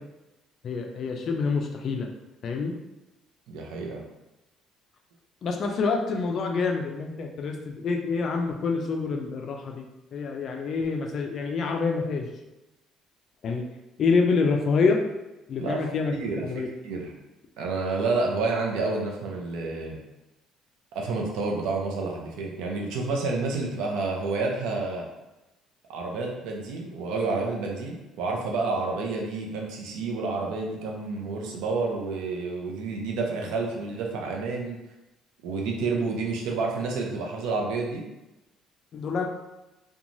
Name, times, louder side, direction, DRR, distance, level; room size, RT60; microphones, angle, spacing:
voice 1, 0.6-2.1 2.4-2.7 5.4-9.8 10.1-12.3 13.4-13.6 14.0-15.0 15.5-16.1 16.4-16.7 38.9-39.3, left 4 dB, 40° left, 2 dB, 0.3 m, -26 dB
voice 2, 3.5-4.0 15.6-15.8 16.1-17.1 17.6-20.0 20.9-25.1 25.9-34.8 35.4-38.0, right 3 dB, 90° right, 0 dB, 0.5 m, -29 dB
3.0 x 2.2 x 2.5 m, 1.0 s
cardioid pair, 165°, 0 cm